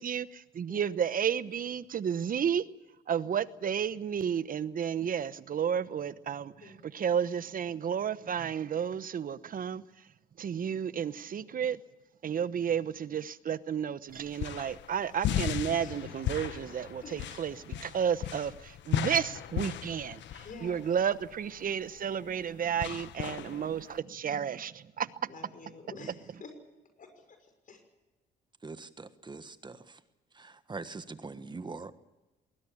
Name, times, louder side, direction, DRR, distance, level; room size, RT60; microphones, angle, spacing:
voice 1, 0.0-2.6 3.1-9.8 10.4-11.8 12.2-25.3, right 8 dB, 45° right, 1.0 m, -32 dB
sound 1, 14.1-24.0, left 11 dB, 70° left, 1.2 m, -36 dB
voice 2, 20.4-20.8 25.3-26.5 27.0-27.4 27.7-27.8, left 3 dB, 45° left, 6.0 m, -48 dB
voice 3, 28.6-30.0 30.3-31.9, right 3 dB, 25° right, 1.4 m, -43 dB
20.5 x 19.5 x 8.7 m
cardioid pair, 85°, 20 cm